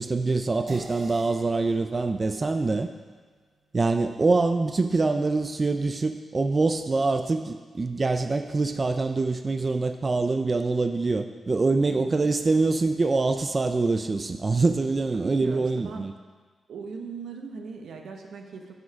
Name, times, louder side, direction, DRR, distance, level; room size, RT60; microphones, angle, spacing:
voice 1, 0.0-2.9 3.7-16.1, right 3 dB, 30° right, 8 dB, 0.3 m, -25 dB
sound 1, 0.7-5.4, right 2 dB, 60° right, 1.6 m, -49 dB
voice 2, 11.8-12.3 15.1-16.1 16.7-18.7, right 5 dB, 90° right, 3 dB, 0.9 m, -39 dB
7.1 x 6.3 x 5.7 m, 1.5 s
wide cardioid pair, 135°, 0 cm